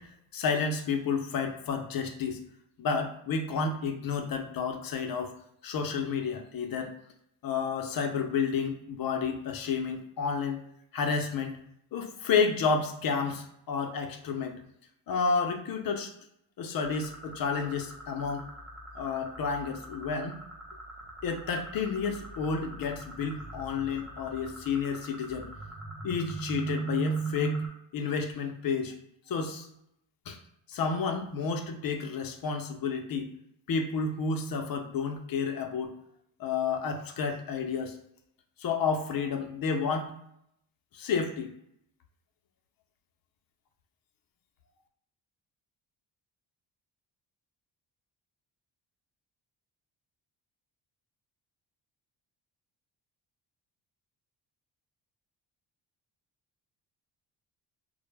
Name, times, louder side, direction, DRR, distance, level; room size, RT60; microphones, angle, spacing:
voice 1, 0.3-2.4 2.8-5.3 5.6-6.9 7.4-10.6 10.9-11.6 11.9-14.6 15.1-16.1 16.6-18.4 19.0-20.4 21.2-25.5 26.0-27.6 27.9-28.9 29.3-29.7 30.3-30.4 30.7-33.3 33.7-35.9 36.4-37.9 38.6-40.1 40.9-41.5, left 5 dB, 50° left, 5 dB, 0.5 m, -30 dB
sound 1, 16.8-27.7, right 3 dB, ahead, 0.5 m, -39 dB
2.1 x 2.0 x 3.1 m, 0.74 s
cardioid pair, 100°, 45 cm